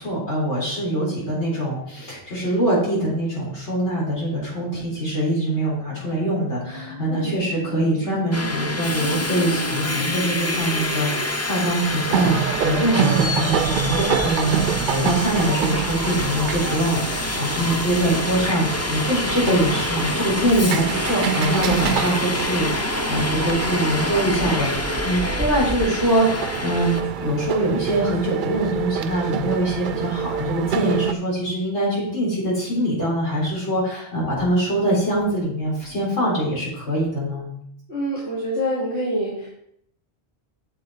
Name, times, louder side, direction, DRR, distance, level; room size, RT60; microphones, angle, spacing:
voice 1, 0.0-37.5, right 1 dB, 90° left, -6 dB, 4.4 m, -23 dB
sound 1, 5.8-11.3, left 2 dB, 45° left, 3.5 m, -34 dB
Subway metro underground, 8.3-27.0, left 1 dB, 15° left, 0.6 m, -27 dB
sound 2, 12.1-31.1, right 9 dB, 60° right, 0.6 m, -27 dB
voice 2, 37.9-39.5, equal, 75° left, -9 dB, 3.1 m, -26 dB
7.7 x 7.5 x 4.8 m, 0.71 s
omnidirectional pair, 1.1 m